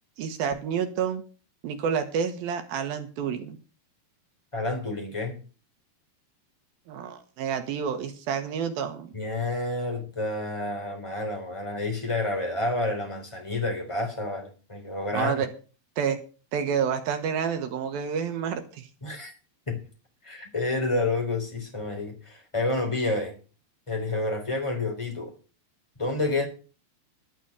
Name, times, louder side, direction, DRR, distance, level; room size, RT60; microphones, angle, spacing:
voice 1, 0.2-1.2 1.6-3.6 6.9-9.1 15.1-15.5 16.0-16.2 16.5-18.9 26.4-26.5, right 7 dB, 70° right, 7 dB, 2.7 m, -29 dB
voice 2, 4.5-5.4 9.1-15.4 19.0-19.3 19.7-19.8 20.2-23.3 23.9-25.3 26.0-26.5, left 2 dB, 10° left, 3 dB, 2.7 m, -29 dB
12.5 x 6.1 x 7.9 m, 0.37 s
omnidirectional pair, 5.0 m